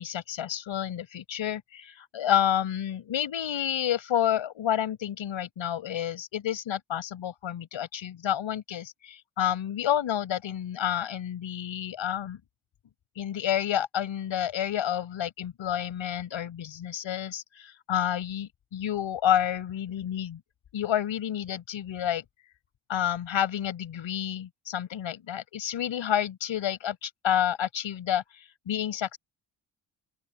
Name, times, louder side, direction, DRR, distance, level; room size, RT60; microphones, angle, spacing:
voice 1, 0.0-12.4 13.2-20.4 20.7-22.2 22.9-29.2, left 10 dB, 80° left, 6.6 m, -29 dB
open air
supercardioid pair, 45°, 46 cm